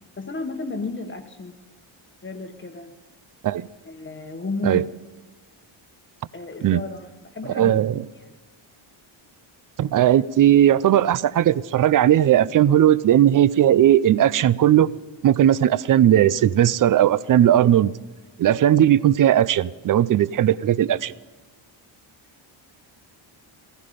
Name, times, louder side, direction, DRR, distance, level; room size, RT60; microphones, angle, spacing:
voice 1, 0.2-1.6 2.2-2.9 3.8-4.9 6.3-7.9 8.1-8.4, left 3 dB, 25° left, 1.1 m, -33 dB
voice 2, 7.5-8.0 9.8-14.9 15.2-17.9 18.4-21.1, right 11 dB, 40° right, 0.5 m, -17 dB
16.0 x 15.0 x 5.1 m
cardioid pair, 135°, 50 cm